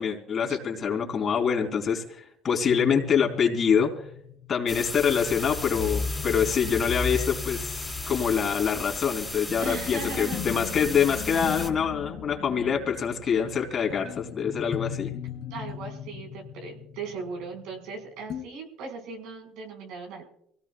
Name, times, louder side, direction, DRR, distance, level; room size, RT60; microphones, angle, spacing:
voice 1, 0.0-4.1 4.5-15.1, left 7 dB, 45° left, 1 dB, 3.7 m, -25 dB
sound 1, 2.7-17.9 18.3-18.4, left 6 dB, 60° left, 2.3 m, -37 dB
sound 2, 4.7-11.7, left 2 dB, 5° left, 3.7 m, -36 dB
voice 2, 9.6-10.4 15.5-20.3, right 4 dB, 75° right, 2 dB, 5.0 m, -38 dB
24.5 x 17.5 x 2.4 m, 0.71 s
supercardioid pair, 75°, 0 cm